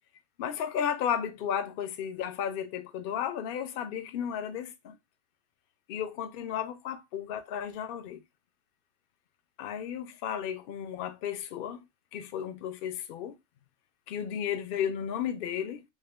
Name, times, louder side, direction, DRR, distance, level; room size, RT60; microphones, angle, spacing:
voice 1, 0.4-5.0 5.9-8.2 9.6-11.8 12.1-13.4 14.1-15.8, left 9 dB, 60° left, 0.6 m, -33 dB
3.5 x 2.9 x 3.3 m
omnidirectional pair, 1.3 m